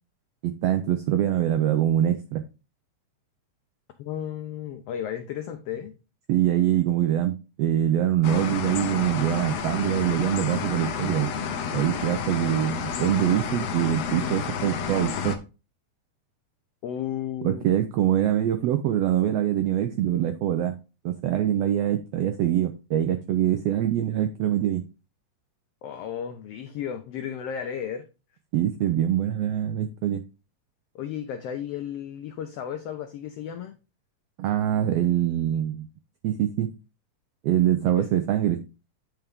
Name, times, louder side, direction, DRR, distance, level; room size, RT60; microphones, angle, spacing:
voice 1, 0.4-2.4 6.3-11.3 11.7-15.4 17.4-20.8 21.0-24.8 28.5-30.2 34.4-35.9 36.2-36.7 37.4-38.6, right 11 dB, 85° right, 1.4 m, -24 dB
voice 2, 4.0-5.9 16.8-17.6 25.8-28.1 30.9-33.7 38.0-38.1, left 9 dB, 85° left, 1.3 m, -34 dB
sound 1, 8.2-15.4, left 6 dB, 70° left, 1.8 m, -30 dB
9.4 x 4.5 x 3.5 m
omnidirectional pair, 3.6 m